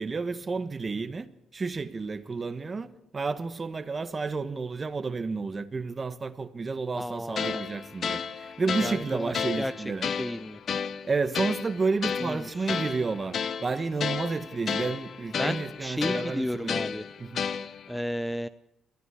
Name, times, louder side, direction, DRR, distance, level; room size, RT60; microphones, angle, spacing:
voice 1, 0.0-10.1 11.0-16.7 17.2-17.4, right 4 dB, 30° right, 1.4 m, -31 dB
voice 2, 6.9-7.6 8.8-9.7 10.0-10.6 12.2-12.7 15.4-17.0 17.9-18.5, equal, 5° left, 0.7 m, -33 dB
sound 1, 7.4-18.0, left 6 dB, 55° left, 1.1 m, -33 dB
22.5 x 16.0 x 8.3 m
cardioid pair, 85°, 0 cm